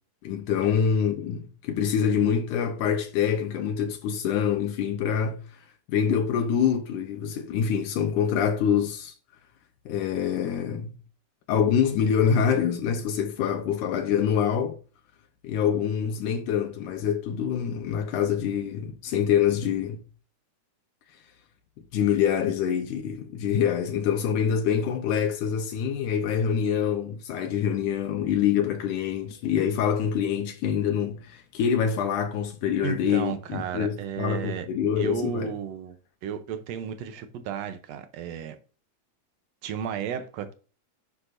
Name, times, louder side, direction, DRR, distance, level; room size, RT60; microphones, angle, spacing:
voice 1, 0.2-5.4 5.9-9.1 9.9-10.9 11.5-14.8 15.4-20.0 21.9-35.5, left 8 dB, 80° left, 2.3 m, -25 dB
voice 2, 32.8-34.7 35.0-36.0 36.2-38.6 39.6-40.5, right 8 dB, 70° right, 1.7 m, -33 dB
9.9 x 5.8 x 2.6 m
omnidirectional pair, 3.6 m